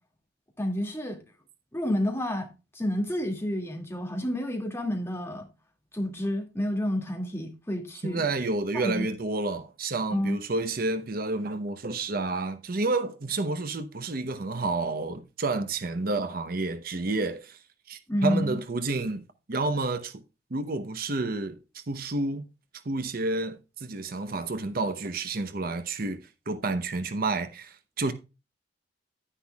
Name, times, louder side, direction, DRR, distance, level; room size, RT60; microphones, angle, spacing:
voice 1, 0.6-1.2 1.7-2.5 2.7-5.5 5.9-8.3 8.7-9.1 10.1-10.4 18.1-18.6, left 1 dB, 15° left, 2.1 m, -29 dB
voice 2, 8.0-19.2 19.5-20.2 20.5-22.4 22.8-28.1, right 3 dB, 50° right, 0.8 m, -30 dB
10.0 x 10.0 x 2.3 m
head